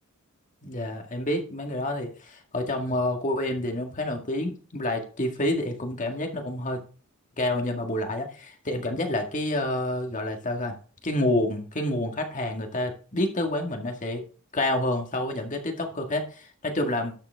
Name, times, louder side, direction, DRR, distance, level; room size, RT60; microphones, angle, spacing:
voice 1, 0.6-6.8 7.4-10.8 11.0-14.2 14.5-17.1, left 1 dB, 35° left, 4 dB, 1.9 m, -28 dB
12.0 x 7.1 x 3.6 m, 0.39 s
head